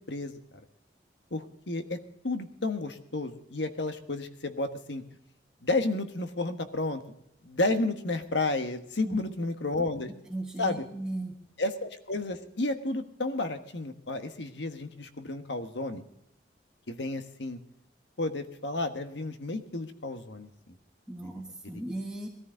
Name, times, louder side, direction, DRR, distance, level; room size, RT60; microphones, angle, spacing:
voice 1, 1.3-2.0 2.2-5.0 5.6-7.2 7.4-10.1 10.6-10.8 11.6-16.0 16.9-17.6 18.2-20.7, left 2 dB, 75° left, 8 dB, 1.4 m, -32 dB
voice 2, 10.3-11.4 21.1-22.3, right 2 dB, 5° right, 0 dB, 1.3 m, -36 dB
20.5 x 14.0 x 3.9 m, 0.76 s
head